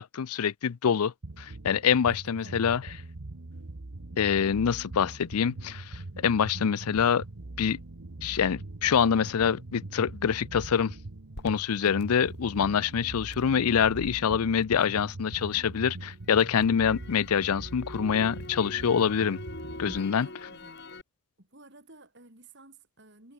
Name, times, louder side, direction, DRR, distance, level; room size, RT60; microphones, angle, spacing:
voice 1, 0.0-2.8 4.2-7.2 7.6-7.8 8.2-10.9 11.4-19.4 19.8-20.3, left 7 dB, 85° left, 0.5 m, -25 dB
sound 1, 1.2-20.0, right 2 dB, 80° right, 1.2 m, -42 dB
voice 2, 2.1-2.7 20.2-20.8 21.4-23.3, right 2 dB, 50° right, 4.7 m, -54 dB
Crackle, 11.3-15.5 15.9-21.0, left 2 dB, 50° left, 3.2 m, -46 dB
head